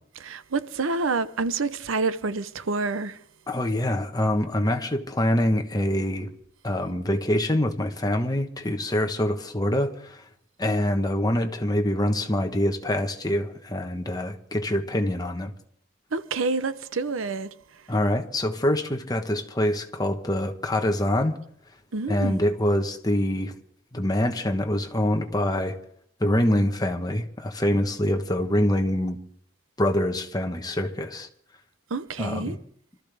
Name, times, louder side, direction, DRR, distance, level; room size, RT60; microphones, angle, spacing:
voice 1, 0.2-3.2 16.1-17.5 21.9-22.4 31.9-32.6, right 3 dB, 75° right, 0.7 m, -28 dB
voice 2, 3.5-6.3 6.6-10.2 10.6-15.5 17.9-21.3 22.1-23.5 23.9-25.8 26.2-29.2 29.8-31.3 32.2-32.6, left 1 dB, 20° left, 1.2 m, -25 dB
25.5 x 13.5 x 3.5 m
head